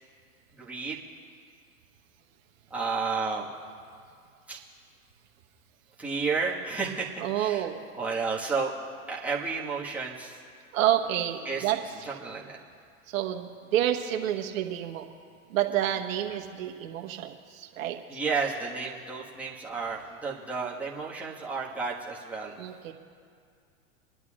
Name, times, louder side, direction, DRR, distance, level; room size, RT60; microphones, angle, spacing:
voice 1, 0.5-1.0 2.7-3.5 4.5-4.6 6.0-7.6 7.9-8.7 9.1-10.4 11.4-11.8 12.0-12.6 18.1-22.6, right 4 dB, 5° right, -6 dB, 1.6 m, -32 dB
voice 2, 7.2-7.8 10.7-11.8 13.1-15.1 15.5-18.0 22.6-22.9, right 11 dB, 65° right, 3 dB, 1.3 m, -29 dB
27.5 x 11.0 x 2.5 m, 2.2 s
hypercardioid pair, 125°, 43 cm